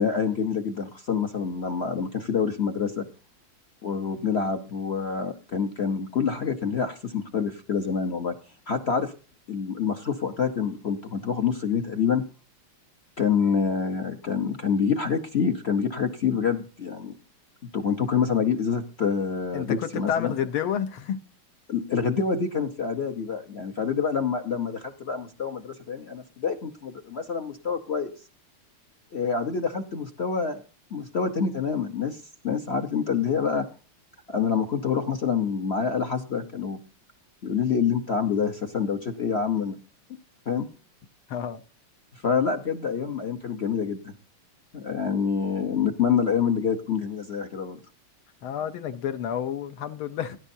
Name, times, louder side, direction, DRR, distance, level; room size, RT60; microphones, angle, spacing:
voice 1, 0.0-3.1 3.8-8.3 8.7-9.1 9.5-12.2 13.2-17.2 17.7-20.3 21.7-28.1 29.1-30.6 30.9-33.7 34.3-36.8 37.4-39.8 40.5-40.7 42.1-44.1 44.7-47.8, left 6 dB, 50° left, 0.7 m, -27 dB
voice 2, 19.5-21.2 41.3-41.6 48.4-50.4, left 9 dB, 75° left, 1.8 m, -30 dB
18.5 x 11.0 x 2.7 m
omnidirectional pair, 2.4 m